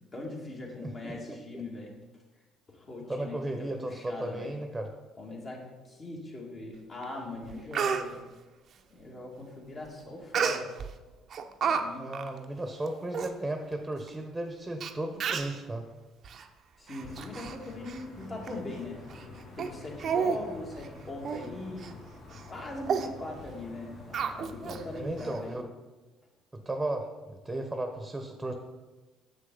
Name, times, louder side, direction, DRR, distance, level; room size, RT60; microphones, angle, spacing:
voice 1, 0.1-1.9 2.7-4.5 5.2-8.2 8.9-10.7 11.6-12.1 16.8-21.9 22.5-25.6, left 2 dB, 40° left, -2 dB, 2.2 m, -41 dB
voice 2, 0.8-1.4 3.1-4.9 12.0-15.9 24.9-25.7 26.5-28.5, right 1 dB, 15° right, 5 dB, 0.9 m, -35 dB
Speech, 7.0-7.1 7.5-8.0 10.3-10.9 11.3-11.8 12.1-12.3 12.9-13.0 13.1-13.3 14.1-14.2 14.8-14.9 15.2-15.6 16.2-16.4 16.9-17.6 17.9-18.0 18.5-18.6 19.1-19.2 19.6-19.7 20.0-20.4 20.7-20.9 21.2-21.4 21.8-21.9 22.3-22.5 22.9-23.1 24.1-24.8 25.2-25.3, right 6 dB, 55° right, 0.6 m, -30 dB
sound 1, 17.0-25.2, left 3 dB, 70° left, 2.6 m, -48 dB
7.0 x 6.5 x 3.9 m, 1.2 s
supercardioid pair, 65°, 0 cm